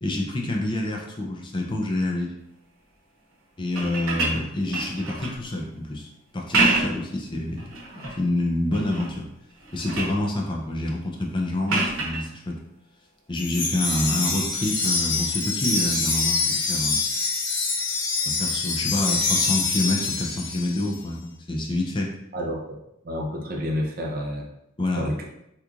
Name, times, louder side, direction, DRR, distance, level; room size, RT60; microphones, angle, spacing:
voice 1, 0.0-2.3 3.6-7.6 8.2-9.3 9.7-12.6 13.3-17.0 18.2-22.1 24.8-25.1, left 1 dB, 25° left, 0 dB, 0.4 m, -27 dB
sound 1, 3.6-5.4 6.3-7.1 7.6-8.2 8.7-9.2 9.5-10.2 11.7-12.2 14.0-14.1, right 2 dB, 85° right, 0.9 m, -27 dB
Wind chime, 13.4-20.9, left 4 dB, 60° left, 0.9 m, -25 dB
voice 2, 22.3-22.8 23.0-24.5 24.9-25.2, equal, 45° right, 0 dB, 0.5 m, -29 dB
2.9 x 2.4 x 3.6 m, 0.82 s
head